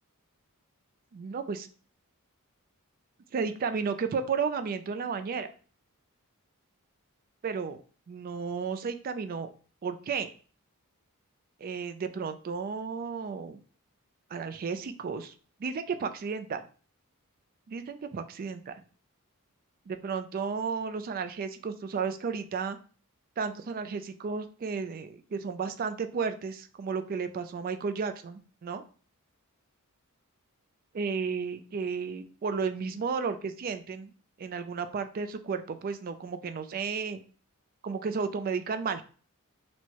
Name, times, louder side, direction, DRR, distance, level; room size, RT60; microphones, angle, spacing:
voice 1, 1.1-1.7 3.3-5.5 7.4-7.8 8.1-9.5 9.8-10.3 11.6-13.6 14.3-15.3 15.6-16.6 17.7-18.8 19.9-22.8 23.4-28.8 30.9-34.1 34.4-37.2 37.8-39.0, right 5 dB, 40° right, 9 dB, 0.3 m, -33 dB
4.4 x 2.1 x 2.8 m, 0.40 s
head